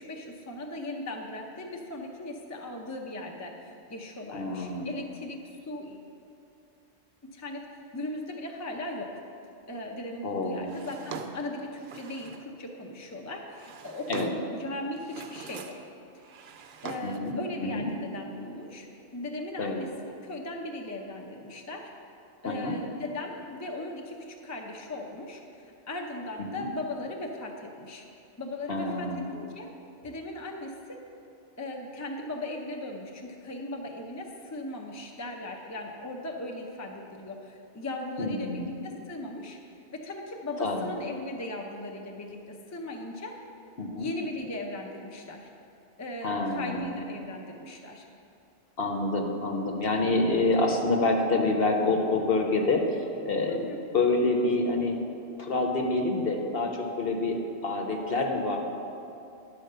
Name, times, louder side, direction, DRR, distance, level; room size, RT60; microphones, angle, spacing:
voice 1, 0.0-6.0 7.2-7.7 7.9-9.2 9.7-15.7 16.8-18.9 19.1-21.9 22.4-25.4 25.9-28.0 28.4-29.7 30.0-31.0 31.6-39.6 39.9-43.4 44.0-45.5 46.0-48.1 53.5-53.8, left 1 dB, 20° left, 1 dB, 0.5 m, -38 dB
voice 2, 4.3-4.9 10.2-10.7 14.1-14.3 17.0-17.3 17.6-17.9 19.6-19.8 22.4-22.7 26.4-26.6 28.7-29.2 38.2-38.7 40.6-40.9 43.8-44.1 46.2-46.9 48.8-52.8 53.2-53.7 53.9-55.0 55.4-56.7 57.0-57.4 57.6-58.6, left 2 dB, 55° left, 2 dB, 1.0 m, -27 dB
Drawer open or close, 10.7-12.5 13.3-14.6 15.0-15.9 16.2-17.3, right 5 dB, 65° right, 0.8 m, -42 dB
11.0 x 4.3 x 6.7 m, 2.7 s
omnidirectional pair, 1.2 m